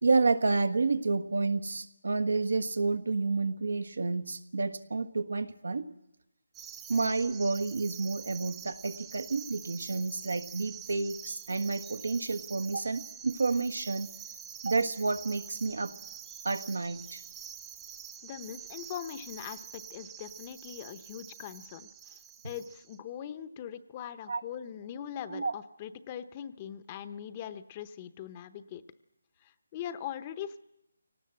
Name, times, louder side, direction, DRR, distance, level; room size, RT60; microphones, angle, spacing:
voice 1, 0.0-5.9 6.9-14.1 14.6-15.9 16.4-17.2 24.3-24.4 25.3-25.5, right 3 dB, 85° right, 10 dB, 1.5 m, -30 dB
sound 1, 6.5-23.0, right 9 dB, 10° right, 0.8 m, -46 dB
voice 2, 18.2-22.2 22.4-28.8 29.4-30.6, left 9 dB, 25° left, 12 dB, 0.7 m, -41 dB
25.0 x 18.0 x 7.8 m, 0.88 s
hypercardioid pair, 165°, 0 cm